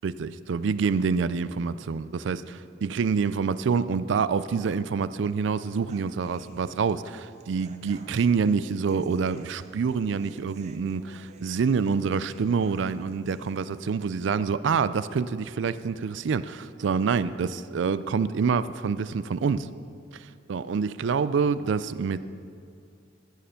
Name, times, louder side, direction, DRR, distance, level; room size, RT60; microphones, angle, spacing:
voice 1, 0.0-19.7 20.1-22.2, right 5 dB, 65° right, 15 dB, 0.4 m, -27 dB
Human voice / Acoustic guitar, 5.9-13.9, right 3 dB, 40° right, 0.7 m, -53 dB
14.5 x 6.7 x 5.7 m, 2.5 s
head